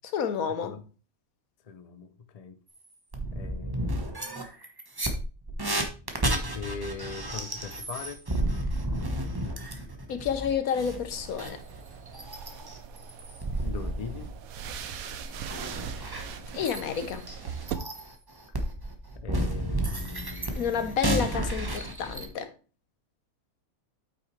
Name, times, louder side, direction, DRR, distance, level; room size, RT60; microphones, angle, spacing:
voice 1, 0.1-0.8 10.1-11.6 16.5-17.3 20.5-22.5, left 7 dB, 75° left, 1.3 m, -30 dB
voice 2, 1.7-2.6 3.3-4.1 6.5-8.2 13.6-14.3 19.2-20.9, left 5 dB, 50° left, 0.4 m, -41 dB
sound 1, 2.8-2.9 3.1-14.3 14.7-22.3, right 1 dB, 20° right, 0.9 m, -32 dB
sound 2, 11.1-17.7, right 7 dB, 80° right, 1.2 m, -40 dB
8.6 x 5.8 x 3.2 m
omnidirectional pair, 1.5 m